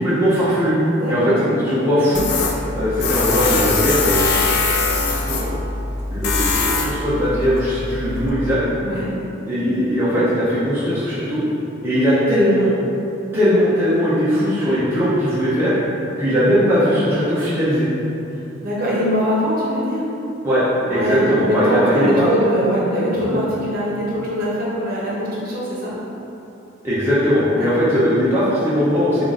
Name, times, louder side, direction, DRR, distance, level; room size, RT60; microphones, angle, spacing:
voice 1, 0.0-0.8 1.1-2.3 2.7-5.6 6.1-8.6 9.5-11.4 11.8-12.7 13.3-15.7 16.2-17.9 20.4-22.3 23.3-23.4 26.8-29.3, equal, 10° right, -12 dB, 0.6 m, -19 dB
voice 2, 0.9-1.4 8.8-9.1 18.6-20.0 20.8-25.9 27.5-27.7, equal, 50° right, -6 dB, 0.9 m, -22 dB
Tools, 2.1-8.3, left 3 dB, 55° left, 0.4 m, -22 dB
3.6 x 2.4 x 3.6 m, 2.9 s
head